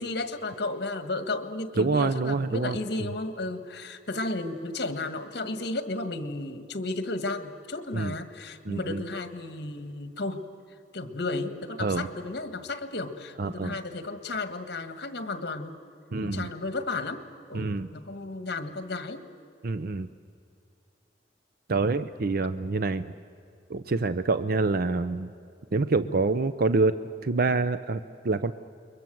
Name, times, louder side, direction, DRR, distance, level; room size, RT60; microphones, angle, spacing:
voice 1, 0.0-10.5 10.9-15.8 16.2-17.2 17.5-19.2 26.0-26.2, left 2 dB, 65° left, 9 dB, 1.7 m, -33 dB
voice 2, 1.8-2.8 7.9-8.2 8.7-9.0 11.8-12.1 13.4-13.8 16.1-16.5 17.5-17.9 19.6-20.1 21.7-23.1 23.7-25.3 25.7-28.5, right 3 dB, 55° right, 12 dB, 0.6 m, -26 dB
29.5 x 22.5 x 7.7 m, 2.4 s
head